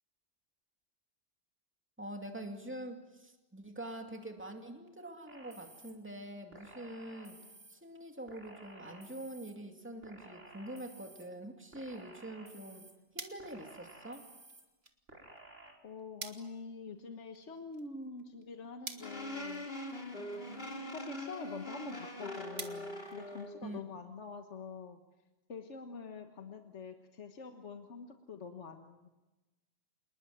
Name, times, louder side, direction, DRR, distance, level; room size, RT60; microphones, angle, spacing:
voice 1, 2.0-7.4 7.7-12.9 13.1-14.3 23.6-23.8, right 1 dB, 10° right, 4 dB, 2.5 m, -45 dB
sound 1, 5.3-5.9 6.5-7.8 8.3-9.5 10.0-11.2 11.7-12.9 13.4-14.6 15.1-15.7, right 2 dB, 90° right, 4.8 m, -54 dB
sound 2, 12.6-23.9, right 3 dB, 65° right, 2.2 m, -52 dB
voice 2, 15.8-19.7 20.9-25.0 25.5-29.1, left 4 dB, 80° left, 5 dB, 1.7 m, -46 dB
sound 3, 19.0-23.6, left 1 dB, 55° left, 3.4 m, -42 dB
28.0 x 20.5 x 9.3 m, 1.1 s
omnidirectional pair, 1.2 m